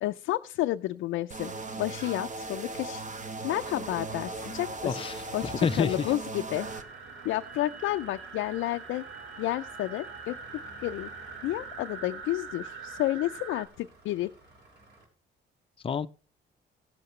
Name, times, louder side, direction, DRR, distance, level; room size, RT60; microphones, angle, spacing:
voice 1, 0.0-3.0 3.4-5.0 5.3-6.7 7.2-9.0 9.4-10.4 10.8-11.1 11.4-14.3, left 15 dB, 85° left, 0.4 m, -31 dB
sound 1, 1.3-6.8, right 3 dB, 40° right, 1.1 m, -38 dB
sound 2, 3.6-15.0, right 2 dB, 60° right, 3.3 m, -54 dB
voice 2, 4.8-6.1 15.8-16.1, left 6 dB, 25° left, 0.5 m, -29 dB
sound 3, 6.5-13.7, right 5 dB, 80° right, 1.3 m, -43 dB
16.0 x 7.8 x 3.1 m
cardioid pair, 90°, 20 cm